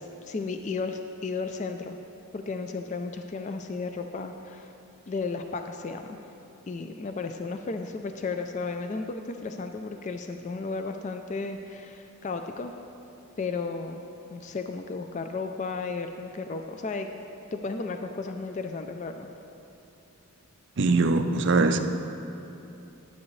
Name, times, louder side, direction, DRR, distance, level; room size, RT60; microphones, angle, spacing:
voice 1, 0.0-2.0 2.3-4.7 5.1-6.2 6.7-12.7 13.4-14.0 14.3-17.1 17.5-19.3, left 4 dB, 30° left, 6 dB, 0.3 m, -34 dB
voice 2, 20.8-21.8, right 3 dB, 50° right, 7 dB, 0.4 m, -22 dB
9.9 x 9.6 x 3.2 m, 2.8 s
head